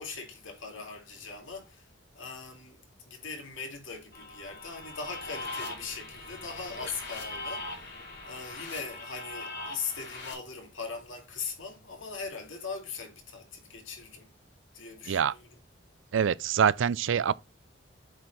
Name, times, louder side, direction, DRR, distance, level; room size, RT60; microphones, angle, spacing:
voice 1, 0.0-1.9 2.1-8.0 8.2-14.3 14.7-15.5, left 5 dB, 80° left, 2.3 m, -40 dB
sound 1, 4.1-10.3, left 2 dB, 55° left, 3.4 m, -41 dB
voice 2, 16.1-17.3, right 7 dB, 75° right, 0.4 m, -25 dB
7.9 x 4.4 x 4.0 m
head